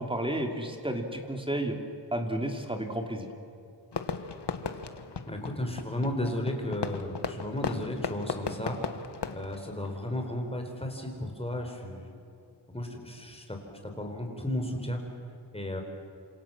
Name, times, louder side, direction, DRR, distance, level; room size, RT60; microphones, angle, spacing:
voice 1, 0.0-1.8 2.1-3.3, right 1 dB, 10° right, 4 dB, 3.0 m, -32 dB
Fireworks, 3.9-10.4, left 5 dB, 70° left, 1.5 m, -37 dB
voice 2, 5.3-8.8 9.3-12.1 12.7-13.6 13.8-15.0 15.5-15.8, left 1 dB, 15° left, 3 dB, 4.5 m, -34 dB
28.0 x 26.5 x 7.6 m, 2.6 s
wide cardioid pair, 125°, 42 cm